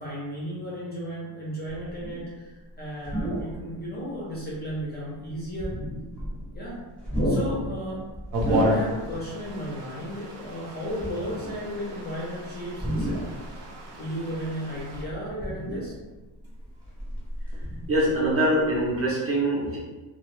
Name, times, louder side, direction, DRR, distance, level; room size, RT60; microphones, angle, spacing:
voice 1, 0.0-5.7 6.5-6.8 7.2-8.0 8.4-13.4 14.0-15.9, equal, 25° left, -6 dB, 0.4 m, -34 dB
sound 1, 1.7-2.3 3.0-3.7 4.3-4.4 5.4-6.7 7.0-9.2 9.5-9.7 10.9-11.7 12.7-13.7 14.7-16.1 16.6-18.3 18.6-18.8, equal, ahead, 0.7 m, -31 dB
sound 2, 8.3-15.0, equal, 70° right, 0.7 m, -33 dB
voice 2, 17.9-19.8, right 1 dB, 35° right, -4 dB, 0.4 m, -23 dB
2.0 x 2.0 x 3.0 m, 1.2 s
cardioid pair, 170°, 44 cm